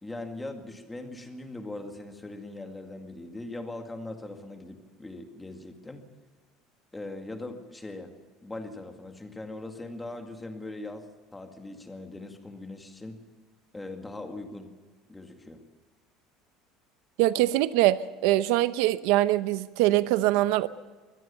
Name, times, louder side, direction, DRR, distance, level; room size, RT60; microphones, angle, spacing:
voice 1, 0.0-6.1 6.9-8.1 8.4-13.2 13.7-14.7 15.1-15.6, left 2 dB, 10° left, 5 dB, 2.0 m, -40 dB
voice 2, 17.2-20.7, right 15 dB, 70° right, 14 dB, 0.8 m, -23 dB
23.5 x 17.5 x 6.9 m, 1.4 s
cardioid pair, 175°, 0 cm